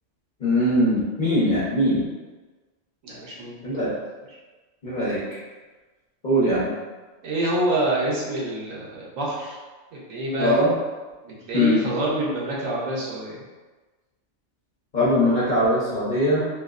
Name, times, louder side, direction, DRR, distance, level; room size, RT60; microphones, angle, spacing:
voice 1, 0.4-2.1 3.6-3.9 4.8-5.2 6.2-6.7 10.4-10.7 11.5-11.8 14.9-16.4, equal, 40° left, -8 dB, 0.8 m, -21 dB
voice 2, 3.0-3.6 7.2-9.6 9.9-10.5 11.2-13.4, right 1 dB, 75° right, -5 dB, 1.2 m, -26 dB
3.1 x 2.9 x 2.4 m, 1.3 s
omnidirectional pair, 1.4 m